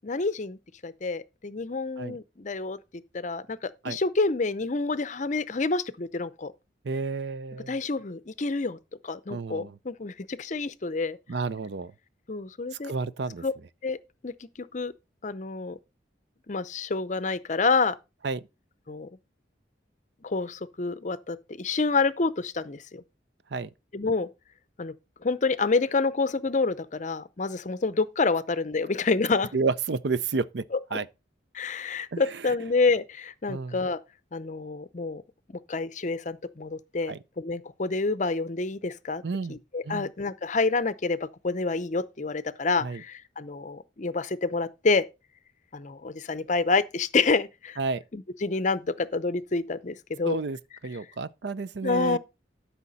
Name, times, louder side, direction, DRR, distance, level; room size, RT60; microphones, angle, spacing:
voice 1, 0.0-2.8 3.1-6.5 7.7-11.2 12.3-12.9 13.4-13.5 13.8-14.0 14.2-14.9 15.2-15.8 16.5-18.0 18.9-19.1 20.2-23.0 23.9-24.3 24.8-24.9 25.2-29.5 31.5-34.0 34.3-35.2 35.7-39.2 39.5-45.1 45.7-47.8 48.1-50.4 51.8-52.2, left 3 dB, 40° left, 0.6 m, -28 dB
voice 2, 6.8-7.7 9.3-9.8 11.3-11.9 12.7-13.4 18.2-18.4 23.5-23.7 29.5-30.6 30.9-31.1 32.1-32.4 33.5-33.8 37.1-37.2 39.2-39.6 39.8-40.1 42.8-43.0 47.8-48.0 50.2-50.6 50.8-52.2, right 4 dB, 65° right, 0.5 m, -30 dB
12.5 x 5.7 x 4.1 m
head